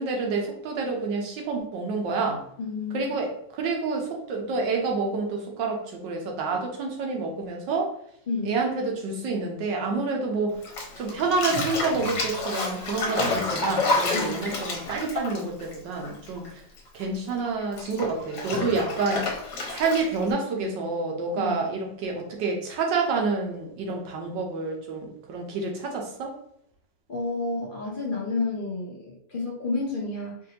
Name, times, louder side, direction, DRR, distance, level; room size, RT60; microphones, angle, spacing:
voice 1, 0.0-2.4 2.9-7.9 8.4-10.6 11.0-16.6 16.9-19.3 19.7-26.3, right 3 dB, 75° right, 1 dB, 1.5 m, -28 dB
voice 2, 2.6-3.1 8.3-8.6 14.1-14.5 21.4-21.6 27.1-30.4, left 3 dB, 50° left, -3 dB, 0.6 m, -30 dB
Bathtub (filling or washing), 10.6-16.5 16.7-20.3, left 3 dB, 65° left, 1.4 m, -29 dB
5.2 x 2.7 x 2.8 m, 0.72 s
omnidirectional pair, 2.1 m